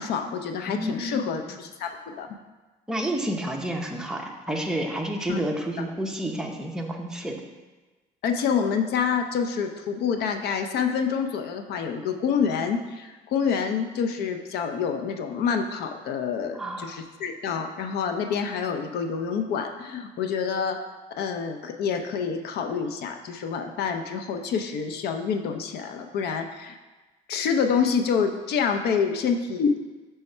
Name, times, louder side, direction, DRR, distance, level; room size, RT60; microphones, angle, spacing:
voice 1, 0.0-2.3 5.3-5.4 8.2-20.8 21.2-26.8 27.3-29.8, left 6 dB, 75° left, 6 dB, 0.6 m, -27 dB
voice 2, 0.7-1.3 2.9-7.4 16.5-17.0, right 1 dB, 5° right, 1 dB, 0.7 m, -30 dB
5.4 x 3.5 x 5.4 m, 1.2 s
cardioid pair, 110°, 17 cm